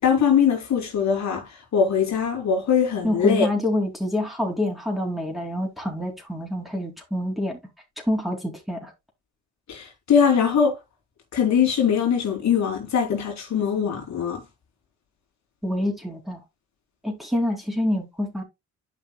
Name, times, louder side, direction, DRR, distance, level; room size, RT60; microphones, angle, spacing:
voice 1, 0.0-3.5 9.7-10.8 11.3-14.4, left 7 dB, 65° left, 3.2 m, -21 dB
voice 2, 3.0-7.6 8.0-8.9 15.6-16.4 17.0-18.4, left 1 dB, ahead, 3.8 m, -26 dB
11.5 x 5.7 x 2.3 m
cardioid pair, 90°, 30 cm